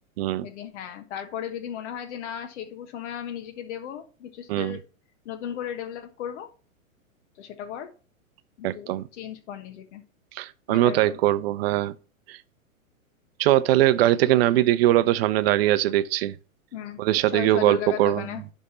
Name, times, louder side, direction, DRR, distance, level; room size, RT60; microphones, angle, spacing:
voice 1, 0.4-4.8 5.2-6.5 7.4-7.9 8.6-10.0 10.7-11.2 16.7-17.0 17.3-18.4, left 9 dB, 55° left, 1.4 m, -35 dB
voice 2, 8.6-9.0 10.4-11.9 12.3-12.4 13.4-16.3 17.0-18.2, right 14 dB, 45° right, 0.7 m, -21 dB
11.0 x 3.7 x 4.2 m
hypercardioid pair, 115°, 42 cm